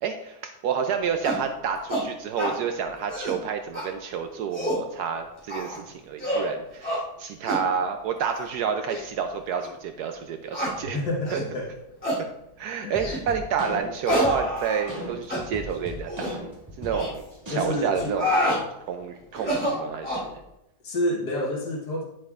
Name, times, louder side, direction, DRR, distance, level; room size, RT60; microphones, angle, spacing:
voice 1, 0.0-11.0 11.3-11.4 12.6-16.4 16.8-18.3 18.9-20.4, right 7 dB, 75° right, 6 dB, 1.1 m, -29 dB
sound 1, 1.2-1.4 1.9-2.0 2.4-2.6 3.0-3.4 3.7-3.8 4.3-4.8 5.5-5.8 6.2-6.5 6.8-7.0 7.5-7.6 8.2-8.4 8.9-9.0 9.6-9.7 10.5-10.7 11.2-11.5 12.0-12.2 13.0-13.2 14.0-15.0 15.3-15.4 16.1-16.3 16.9-17.1 17.9-18.6 19.3-20.3, equal, 5° left, 3.2 m, -27 dB
voice 2, 10.8-11.7 12.8-13.0 17.5-18.1 20.8-22.1, left 1 dB, 75° left, -3 dB, 1.9 m, -29 dB
sound 2, 12.9-18.1, left 1 dB, 15° right, 2.1 m, -38 dB
10.5 x 7.5 x 2.4 m, 0.86 s
omnidirectional pair, 1.8 m